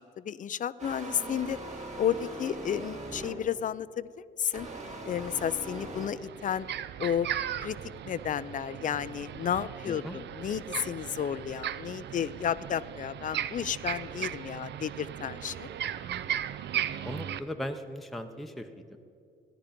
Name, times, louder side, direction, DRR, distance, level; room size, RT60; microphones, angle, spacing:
voice 1, 0.0-1.6 2.0-4.7 5.0-6.7 7.0-7.3 7.6-7.8 8.1-15.7, left 9 dB, 40° left, 17 dB, 0.4 m, -32 dB
sound 1, 0.8-3.6 4.5-6.1, right 2 dB, 35° right, 1.9 m, -40 dB
sound 2, 5.3-5.4 5.8-17.4, right 10 dB, 60° right, 0.5 m, -37 dB
voice 2, 9.9-10.2 17.0-19.0, equal, ahead, 5 dB, 0.7 m, -38 dB
14.0 x 10.5 x 5.2 m, 2.6 s
cardioid pair, 90°, 20 cm